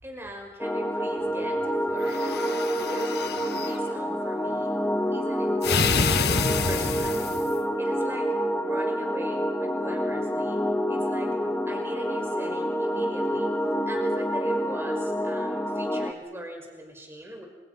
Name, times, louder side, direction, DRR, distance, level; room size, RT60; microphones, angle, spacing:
voice 1, 0.0-2.4 2.8-3.1 3.5-4.7 5.1-6.2 6.6-8.3 8.6-13.5 13.9-17.5, equal, 15° right, 2 dB, 5.3 m, -40 dB
sound 1, 0.6-16.1, equal, 10° left, 1.7 m, -28 dB
sound 2, 2.0-3.8 5.6-7.6, left 4 dB, 60° left, 1.4 m, -27 dB
27.5 x 27.0 x 6.0 m, 1.2 s
head